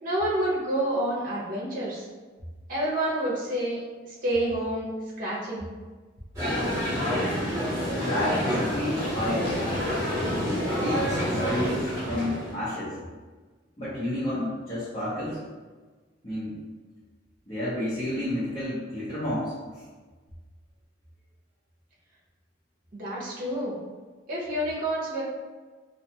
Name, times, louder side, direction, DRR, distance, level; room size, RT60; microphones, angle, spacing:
voice 1, 0.0-2.0 2.7-4.9 5.2-5.7 22.9-23.8 24.3-25.2, right 1 dB, 45° right, -6 dB, 0.7 m, -28 dB
sound 1, 6.3-12.5, equal, 15° right, 1.0 m, -28 dB
voice 2, 7.9-9.5 10.8-13.0 13.8-15.4 16.2-16.6 17.5-19.5, left 1 dB, 30° left, -12 dB, 0.7 m, -30 dB
2.5 x 2.3 x 2.7 m, 1.4 s
head